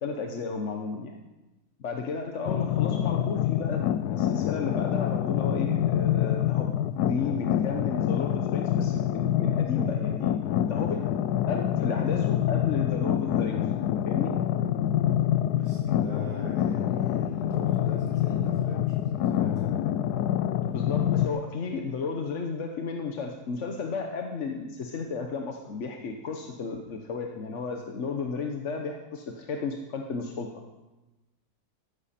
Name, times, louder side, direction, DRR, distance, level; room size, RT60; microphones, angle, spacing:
voice 1, 0.0-1.2 1.8-3.8 4.1-6.7 7.0-10.3 10.6-11.0 11.5-13.6 14.1-14.3 20.7-30.5, left 4 dB, 50° left, 3 dB, 1.1 m, -33 dB
sound 1, 2.5-21.3, left 11 dB, 75° left, 1.1 m, -26 dB
voice 2, 15.5-19.8, equal, 25° left, -4 dB, 5.8 m, -42 dB
14.0 x 13.0 x 4.3 m, 1.1 s
omnidirectional pair, 1.8 m